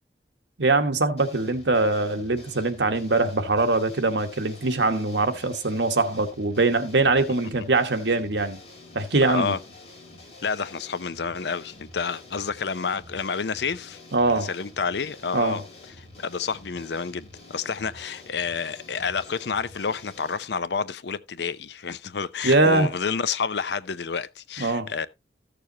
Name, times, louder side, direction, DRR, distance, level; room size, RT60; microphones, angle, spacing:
voice 1, 0.6-8.6 8.9-9.6 14.1-14.5 15.3-15.6 22.4-22.9 24.6-24.9, right 3 dB, 90° right, 1.2 m, -22 dB
sound 1, 1.2-20.4, left 2 dB, 35° left, 3.9 m, -47 dB
voice 2, 9.3-9.6 10.4-14.0 14.3-15.6 16.0-25.1, left 5 dB, 75° left, 0.6 m, -29 dB
14.0 x 6.7 x 2.8 m
head